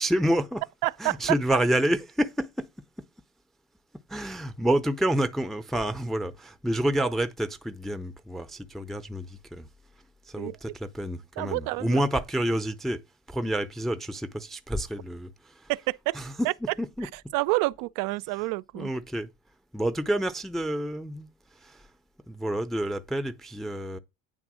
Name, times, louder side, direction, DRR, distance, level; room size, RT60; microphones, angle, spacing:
voice 1, 0.0-0.7 1.0-2.7 4.1-9.7 10.3-13.0 13.3-15.8 16.1-17.1 18.3-18.5 18.7-19.3 19.7-21.9 22.3-24.0, right 1 dB, ahead, 0.5 m, -29 dB
voice 2, 0.8-1.2 10.4-10.6 11.4-12.0 15.7-16.2 16.4-16.5 17.0-18.9, right 21 dB, 55° right, 0.5 m, -28 dB
9.3 x 3.6 x 6.1 m
supercardioid pair, 130°, 40 cm